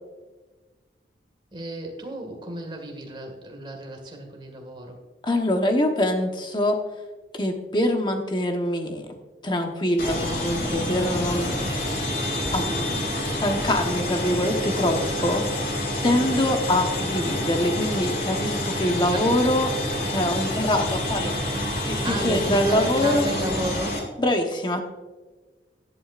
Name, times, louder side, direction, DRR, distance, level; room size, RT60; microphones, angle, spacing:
voice 1, 1.5-5.0 15.9-16.3 19.0-19.3 22.0-24.0, right 1 dB, 25° right, 3 dB, 1.9 m, -33 dB
voice 2, 5.2-6.8 7.3-9.2 9.4-11.9 12.5-15.4 16.0-21.4 21.9-23.3 24.2-24.8, left 1 dB, 25° left, 4 dB, 1.1 m, -24 dB
sound 1, 10.0-24.0, left 1 dB, 55° left, 2.4 m, -28 dB
13.5 x 11.0 x 2.5 m, 1.3 s
head